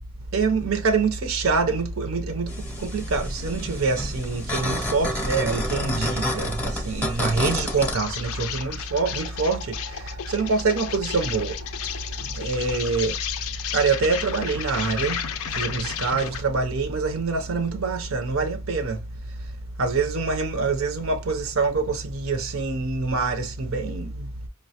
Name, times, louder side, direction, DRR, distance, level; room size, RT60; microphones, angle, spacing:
voice 1, 0.3-11.5 12.3-13.2 13.7-15.2 15.5-19.0 19.8-24.3, right 4 dB, 60° right, 0.5 m, -25 dB
sound 1, 2.5-7.9, left 1 dB, 5° left, 0.7 m, -29 dB
Insect, 7.1-16.5, left 9 dB, 70° left, 0.4 m, -33 dB
5.3 x 2.1 x 2.7 m
head